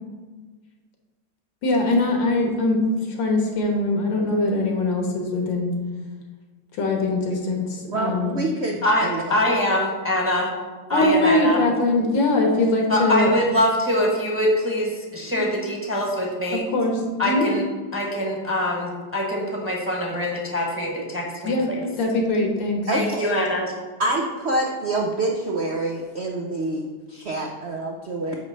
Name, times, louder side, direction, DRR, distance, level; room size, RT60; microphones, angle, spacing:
voice 1, 1.6-5.7 6.8-8.3 10.9-13.3 15.3-15.4 16.7-16.9 17.2-17.5 21.4-21.7 22.0-22.9, left 2 dB, 70° left, 1 dB, 2.0 m, -22 dB
voice 2, 7.9-9.2 22.9-23.3 24.0-28.4, right 2 dB, 90° right, 0 dB, 0.5 m, -26 dB
voice 3, 8.8-10.5 10.9-11.9 12.9-16.6 17.2-17.6 17.9-21.8 22.9-23.7, left 1 dB, 10° right, -2 dB, 0.9 m, -24 dB
9.6 x 3.2 x 6.3 m, 1.4 s
omnidirectional pair, 2.1 m